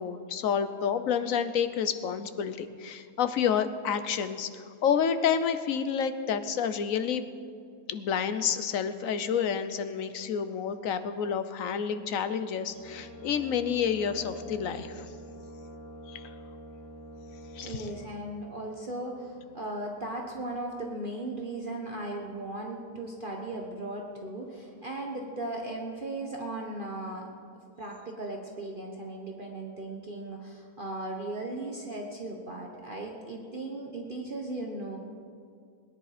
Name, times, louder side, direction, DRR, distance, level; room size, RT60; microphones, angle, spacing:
voice 1, 0.0-7.2 7.9-15.1 16.1-16.2 17.5-17.9, left 7 dB, 65° left, 11 dB, 1.1 m, -29 dB
Brass instrument, 12.7-18.2, equal, 70° right, 3.7 m, -45 dB
voice 2, 17.6-27.3 27.8-35.0, right 2 dB, 35° right, 0 dB, 1.3 m, -37 dB
21.0 x 10.5 x 5.0 m, 2.3 s
omnidirectional pair, 1.6 m